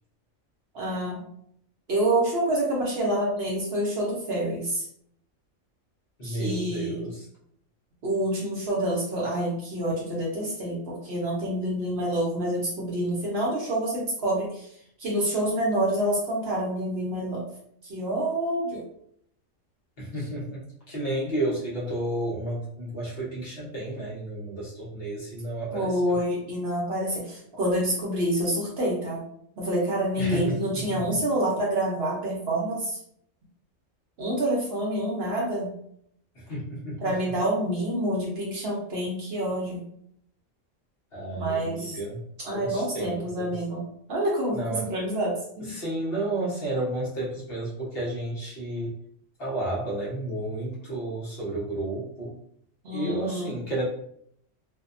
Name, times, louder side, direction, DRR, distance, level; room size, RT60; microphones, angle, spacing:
voice 1, 0.7-1.2 1.9-4.8 6.2-7.1 8.0-14.7 15.0-17.4 17.8-18.8 25.7-29.2 29.6-33.0 34.2-35.7 37.0-39.8 41.3-42.0 42.4-45.7 52.8-53.5, right 1 dB, 60° right, -3 dB, 0.8 m, -27 dB
voice 2, 6.2-7.3 20.0-26.2 30.2-31.0 36.3-37.1 41.1-42.2 42.5-43.6 44.5-44.9 45.6-49.0 49.4-52.3 52.9-53.9, right 1 dB, 50° left, -6 dB, 1.0 m, -32 dB
2.6 x 2.1 x 2.5 m, 0.69 s
omnidirectional pair, 1.4 m